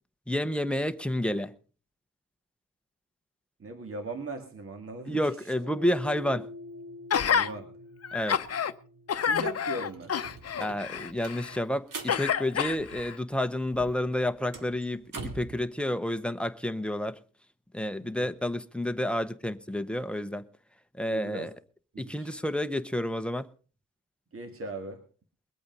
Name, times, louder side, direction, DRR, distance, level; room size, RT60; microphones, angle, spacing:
voice 1, 0.3-1.5 5.1-6.5 8.1-8.4 10.6-17.2 17.7-20.5 21.0-21.5 22.0-23.5, left 1 dB, 5° left, 0.8 m, -30 dB
voice 2, 3.6-5.3 7.3-7.7 9.2-10.1 18.0-18.3 21.1-21.5 21.9-22.4 24.3-25.0, right 2 dB, 45° right, 2.0 m, -39 dB
sound 1, 5.5-14.0, left 2 dB, 65° right, 2.4 m, -48 dB
Gasp, 7.1-7.5 8.0-8.7 9.1-11.6 12.1-13.2 13.8-13.9, left 7 dB, 50° left, 0.7 m, -29 dB
sound 2, 9.1-9.2 9.5-13.4 13.7-15.6, right 4 dB, 80° right, 2.3 m, -44 dB
21.5 x 8.6 x 5.3 m
wide cardioid pair, 140°, 32 cm